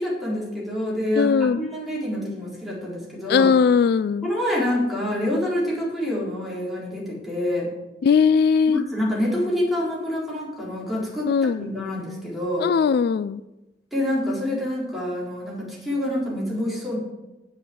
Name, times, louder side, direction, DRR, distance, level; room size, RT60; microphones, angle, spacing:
voice 1, 0.0-3.5 4.2-7.7 8.7-12.7 13.9-17.0, left 1 dB, ahead, -6 dB, 4.1 m, -27 dB
voice 2, 1.2-1.7 3.3-4.3 8.0-8.8 11.3-11.7 12.6-13.4, left 6 dB, 60° left, 15 dB, 0.3 m, -19 dB
9.2 x 7.7 x 7.9 m, 1.0 s
head